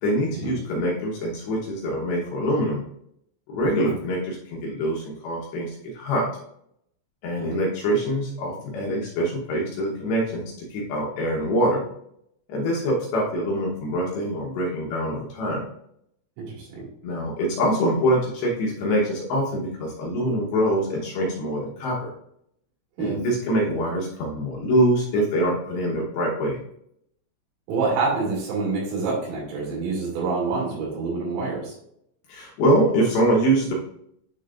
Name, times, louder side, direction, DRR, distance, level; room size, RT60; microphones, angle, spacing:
voice 1, 0.0-2.8 3.5-5.7 5.9-6.3 7.2-11.8 12.5-15.6 17.0-22.1 23.0-26.6 32.3-33.7, equal, 70° left, -3 dB, 2.8 m, -24 dB
voice 2, 16.4-16.9 23.0-23.2 27.7-31.8, right 4 dB, 80° right, -4 dB, 5.0 m, -27 dB
10.0 x 4.2 x 2.4 m, 0.71 s
omnidirectional pair, 6.0 m